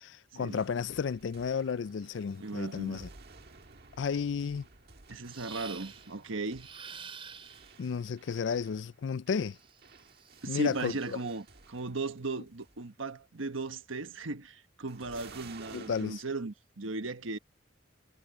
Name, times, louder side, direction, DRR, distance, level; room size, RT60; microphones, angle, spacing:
voice 1, 0.0-3.1 4.0-4.7 7.8-9.6 10.5-10.9 15.7-16.2, left 6 dB, 65° left, 0.4 m, -33 dB
sound 1, 0.6-12.2 12.5-12.9 14.9-16.2, right 4 dB, 55° right, 1.6 m, -55 dB
voice 2, 2.4-3.1 5.1-6.7 10.4-17.4, right 3 dB, 90° right, 1.3 m, -37 dB
sound 2, 5.3-6.1 6.5-7.8 9.5-11.4, right 6 dB, 30° right, 4.8 m, -49 dB
head